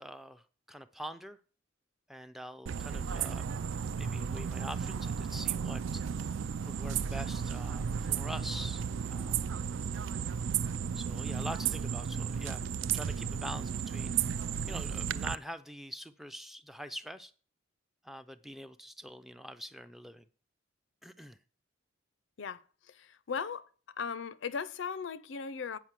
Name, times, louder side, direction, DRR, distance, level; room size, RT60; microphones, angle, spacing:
voice 1, 0.0-1.4 2.1-3.5 4.0-6.0 6.7-8.8 9.1-9.5 10.9-14.2 14.7-17.3 18.0-20.3 21.0-21.4, equal, ahead, 0.3 m, -44 dB
sound 1, 2.7-15.3, right 7 dB, 70° right, 0.4 m, -34 dB
voice 2, 22.4-23.7 24.0-25.8, left 6 dB, 70° left, 0.5 m, -38 dB
8.1 x 5.1 x 7.4 m
head